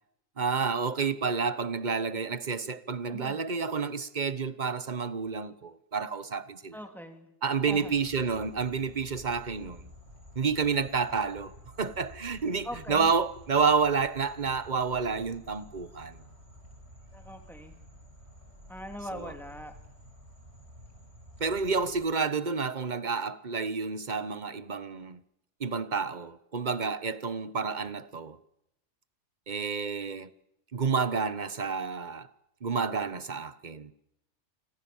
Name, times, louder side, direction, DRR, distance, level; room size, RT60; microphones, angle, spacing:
voice 1, 0.4-6.7 7.4-9.9 10.3-16.2 19.1-19.3 21.4-25.2 25.6-28.4 29.5-30.3 30.7-32.3 32.6-33.9, right 5 dB, 40° right, 1.3 m, -30 dB
voice 2, 3.1-3.4 6.7-7.3 7.6-7.9 12.6-13.1 17.1-17.7 18.7-19.7, equal, ahead, 3.4 m, -41 dB
sound 1, 7.6-22.1, equal, 65° right, 6.3 m, -51 dB
29.5 x 25.5 x 7.2 m
omnidirectional pair, 1.2 m